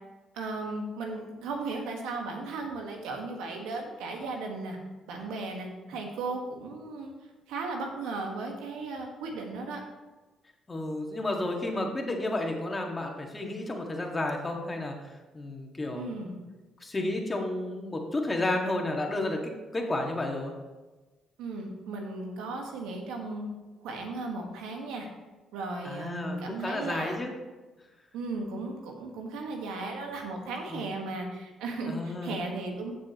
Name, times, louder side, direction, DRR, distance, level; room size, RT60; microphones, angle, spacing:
voice 1, 0.3-4.8 5.1-7.1 7.5-9.8 15.9-16.3 21.4-23.5 23.8-25.1 25.5-27.2 28.1-32.9, right 3 dB, 85° right, 2 dB, 1.6 m, -36 dB
voice 2, 10.7-14.9 15.3-16.2 16.8-20.5 25.8-27.3 30.7-30.9 31.9-32.4, left 2 dB, 25° left, 1 dB, 1.9 m, -32 dB
14.5 x 6.3 x 3.1 m, 1.2 s
supercardioid pair, 65°, 0 cm